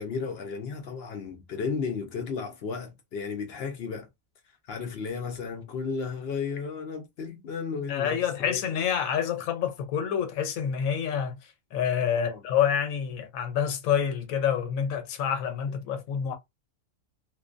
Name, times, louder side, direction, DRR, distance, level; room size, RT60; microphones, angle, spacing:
voice 1, 0.0-4.1 4.7-8.6 12.1-12.4 15.7-15.8, left 5 dB, 60° left, 0.7 m, -34 dB
voice 2, 7.9-11.4 11.7-16.3, left 8 dB, 85° left, 1.0 m, -27 dB
2.5 x 2.1 x 2.4 m
omnidirectional pair, 1.4 m